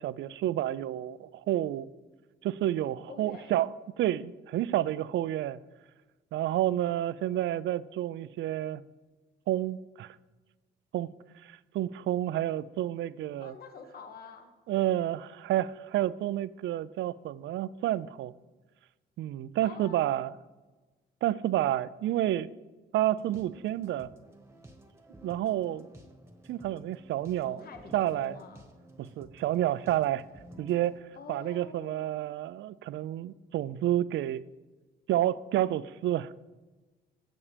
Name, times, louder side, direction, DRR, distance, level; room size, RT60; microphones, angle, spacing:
voice 1, 0.0-1.9 2.4-5.6 6.3-8.8 9.5-10.2 10.9-11.1 11.4-13.5 14.7-18.3 19.2-20.3 21.2-22.5 22.9-24.1 25.2-25.9 26.5-27.6 27.9-28.3 29.0-30.2 30.6-31.0 31.3-34.4 35.1-36.3, right 13 dB, 70° right, 0.4 m, -30 dB
voice 2, 3.1-3.6 13.4-15.0 19.6-20.2 27.3-28.7 31.1-32.4, left 4 dB, 50° left, 1.2 m, -47 dB
sound 1, 23.2-31.0, right 1 dB, 15° right, 1.2 m, -53 dB
16.0 x 7.2 x 3.4 m
cardioid pair, 90°, 20 cm